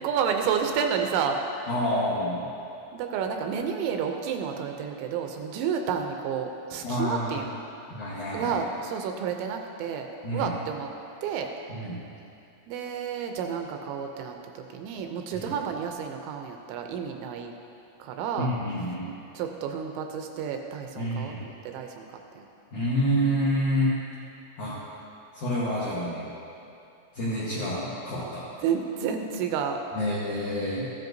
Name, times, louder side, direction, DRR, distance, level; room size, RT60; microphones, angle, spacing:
voice 1, 0.0-1.7 2.9-7.5 8.3-10.1 10.3-10.9 11.2-11.5 12.7-17.5 18.0-18.5 19.3-22.1 22.4-22.5 28.6-29.8, right 7 dB, 80° right, 4 dB, 2.9 m, -30 dB
voice 2, 1.7-2.5 6.8-7.5 7.9-8.5 10.2-10.5 11.7-12.0 15.3-15.5 18.4-19.1 21.0-21.4 22.7-24.0 24.6-24.8 25.3-26.3 27.1-28.5 29.9-30.9, equal, 70° left, -9 dB, 1.9 m, -28 dB
15.0 x 10.5 x 2.6 m, 2.7 s
omnidirectional pair, 5.6 m